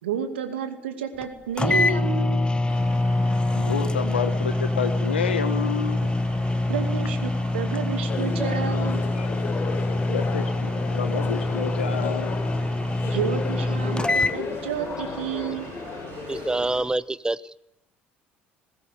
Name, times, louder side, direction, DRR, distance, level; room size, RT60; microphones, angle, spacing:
voice 1, 0.0-2.4 6.7-9.0 13.0-15.7, right 7 dB, 80° right, 7 dB, 2.7 m, -30 dB
sound 1, 1.2-1.3 1.6-14.4, left 2 dB, 15° left, 1.0 m, -25 dB
Mechanical fan, 2.7-16.8, right 6 dB, 60° right, 4.5 m, -43 dB
voice 2, 3.5-6.1 9.1-9.3 10.0-10.5 10.9-12.4, left 7 dB, 85° left, 8 dB, 1.4 m, -29 dB
sound 2, 8.1-16.7, left 5 dB, 40° left, 5.6 m, -34 dB
voice 3, 16.3-17.6, right 2 dB, 15° right, 18 dB, 1.0 m, -26 dB
21.0 x 18.0 x 8.4 m, 0.81 s
hypercardioid pair, 60°, 6 cm